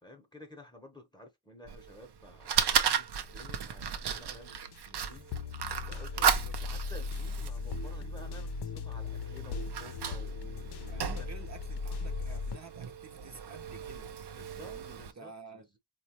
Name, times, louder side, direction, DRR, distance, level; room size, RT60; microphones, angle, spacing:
voice 1, 0.0-6.3 6.6-11.3 14.4-15.8, left 1 dB, 10° left, 0.7 m, -52 dB
Fire, 1.7-15.1, right 7 dB, 85° right, 0.6 m, -35 dB
sound 1, 4.3-12.6, left 4 dB, 85° left, 0.6 m, -38 dB
voice 2, 6.2-6.5 10.8-14.1 14.6-15.6, right 5 dB, 45° right, 0.6 m, -50 dB
4.3 x 2.2 x 2.8 m
wide cardioid pair, 140°, 39 cm